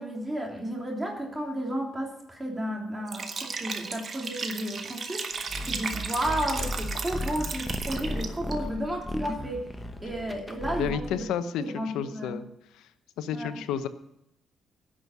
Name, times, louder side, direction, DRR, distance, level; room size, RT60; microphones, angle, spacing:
voice 1, 0.0-11.3 11.6-12.4 13.3-13.6, right 1 dB, 15° right, 0 dB, 3.2 m, -33 dB
Liquid, 3.1-8.5, right 4 dB, 45° right, 1.4 m, -35 dB
sound 1, 5.5-11.2, left 1 dB, 15° left, 1.2 m, -35 dB
voice 2, 10.6-12.5 12.7-12.9 13.2-13.9, left 8 dB, 90° left, 11 dB, 0.8 m, -31 dB
11.0 x 6.3 x 9.2 m, 0.82 s
cardioid pair, 90°, 0 cm